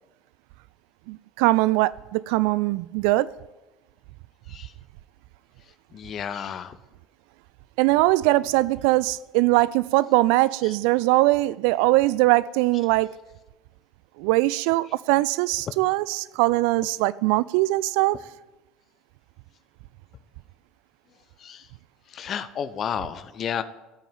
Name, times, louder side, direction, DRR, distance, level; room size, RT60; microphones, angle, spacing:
voice 1, 1.1-3.3 7.8-13.1 14.2-18.2, right 19 dB, 60° right, 0.4 m, -21 dB
voice 2, 5.9-6.8 10.6-10.7 21.4-21.7 22.1-23.6, left 8 dB, 40° left, 1.0 m, -31 dB
14.5 x 9.1 x 9.1 m
figure-of-eight pair, 60°, 0 cm